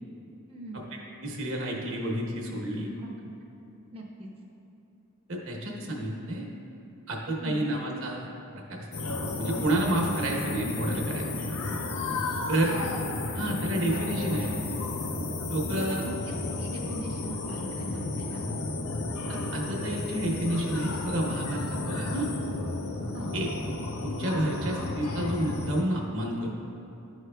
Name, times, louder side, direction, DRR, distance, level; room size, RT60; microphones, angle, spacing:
voice 1, 0.5-0.9 3.0-3.3 3.9-4.3 7.4-7.7 12.6-13.0 15.7-16.1 16.4-18.4 23.1-23.3, right 1 dB, 25° right, -4 dB, 0.6 m, -41 dB
voice 2, 1.2-2.9 5.3-6.5 7.1-8.3 8.5-8.9 9.4-11.3 12.5-12.7 13.3-14.6 15.5-16.0 19.3-22.3 23.3-23.5 24.0-26.5, right 1 dB, 65° right, -1 dB, 1.0 m, -30 dB
sound 1, 8.9-25.8, left 2 dB, 75° left, 0.6 m, -33 dB
11.5 x 4.8 x 2.3 m, 3.0 s
head